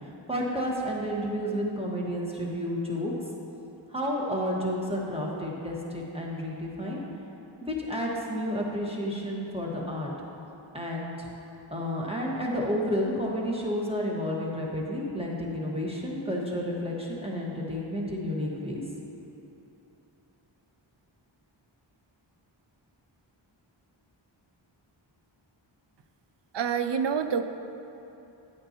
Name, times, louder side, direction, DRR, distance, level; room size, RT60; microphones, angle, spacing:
voice 1, 0.3-3.1 3.9-7.0 7.6-10.1 10.7-11.3 11.7-18.8, equal, 10° right, -3 dB, 1.4 m, -31 dB
voice 2, 26.5-27.4, right 7 dB, 65° right, 9 dB, 0.5 m, -27 dB
9.3 x 8.7 x 2.9 m, 3.0 s
wide cardioid pair, 55°, 47 cm